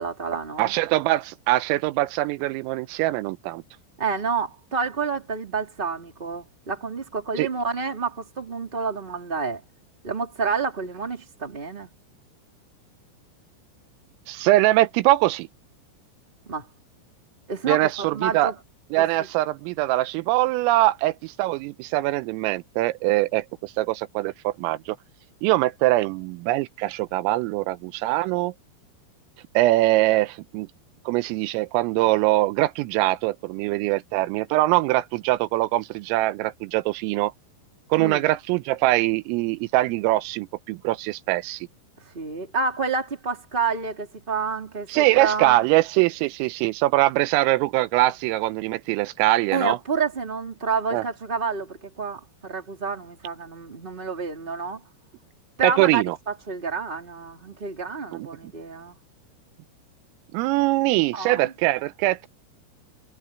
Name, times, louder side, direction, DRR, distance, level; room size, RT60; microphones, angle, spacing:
voice 1, 0.0-0.8 4.0-9.6 10.0-11.9 16.4-16.7 17.5-18.5 19.0-19.3 38.0-38.2 42.1-45.6 49.5-54.8 55.6-56.0 56.5-59.0 61.1-61.5, right 5 dB, 10° right, 3.0 m, -29 dB
voice 2, 0.6-3.6 7.4-7.5 14.3-15.5 17.6-18.5 18.9-25.0 25.4-28.5 29.5-30.7 31.1-37.3 37.9-41.7 44.9-49.8 50.9-51.0 55.6-56.2 58.1-58.5 60.3-62.3, right 18 dB, 85° right, 3.3 m, -22 dB
omnidirectional pair, 5.9 m